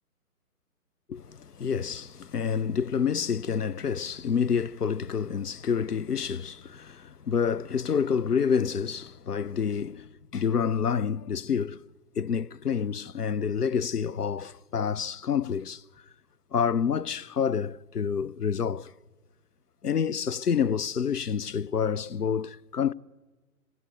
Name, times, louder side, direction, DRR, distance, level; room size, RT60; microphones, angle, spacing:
voice 1, 1.1-11.8 12.2-15.8 16.5-18.9 19.8-22.9, left 7 dB, 75° left, 0.7 m, -28 dB
26.0 x 19.5 x 9.0 m
figure-of-eight pair, 135°, 47 cm